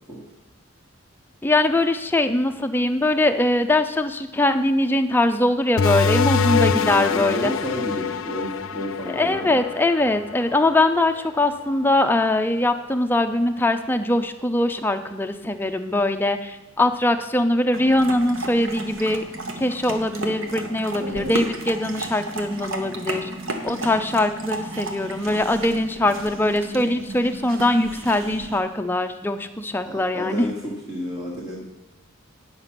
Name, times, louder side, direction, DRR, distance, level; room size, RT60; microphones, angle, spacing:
voice 1, 1.4-7.5 9.1-19.2 19.6-23.3 23.6-30.5, left 1 dB, 10° left, 7 dB, 0.4 m, -22 dB
sound 1, 5.8-11.0, left 5 dB, 75° left, 0.4 m, -24 dB
voice 2, 6.5-9.6 21.0-21.4 29.8-31.6, equal, 20° right, -5 dB, 1.3 m, -31 dB
sound 2, 17.7-28.6, right 2 dB, 75° right, 1.1 m, -33 dB
9.5 x 5.9 x 5.7 m, 1.1 s
head